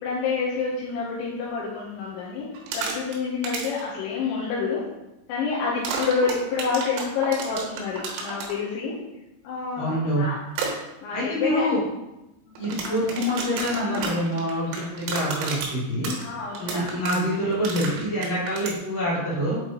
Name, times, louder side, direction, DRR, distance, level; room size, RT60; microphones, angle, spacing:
voice 1, 0.0-2.5 2.7-4.8 5.3-9.0 9.4-10.4 11.0-11.7 12.5-12.6 12.9-13.0 16.2-17.0, left 5 dB, 75° left, -6 dB, 3.1 m, -28 dB
sound 1, 2.5-3.2 3.4-3.8 5.8-8.5 10.5-10.7 12.6-18.8, right 5 dB, 80° right, 3.4 m, -31 dB
voice 2, 9.8-10.2 11.1-11.8 12.6-16.1 16.6-19.6, equal, 45° left, -9 dB, 2.7 m, -26 dB
8.0 x 4.3 x 3.0 m, 0.96 s
omnidirectional pair, 5.6 m